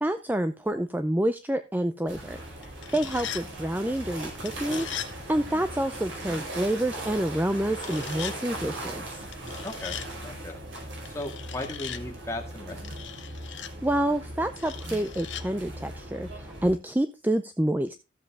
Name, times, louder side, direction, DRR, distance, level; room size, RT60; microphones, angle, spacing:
voice 1, 0.0-2.4 2.9-4.9 5.3-9.2 13.8-17.9, right 1 dB, 10° right, 9 dB, 0.5 m, -28 dB
sound 1, 2.1-16.7, right 1 dB, 90° right, 4.9 m, -39 dB
sound 2, 2.6-3.4 4.5-5.1 7.8-8.4 9.3-10.1 11.1-12.0 12.8-13.7 14.6-15.4, left 10 dB, 80° left, 1.0 m, -39 dB
voice 2, 9.6-10.6 11.1-13.1, left 1 dB, 15° left, 2 dB, 2.1 m, -37 dB
13.5 x 7.6 x 3.5 m, 0.27 s
head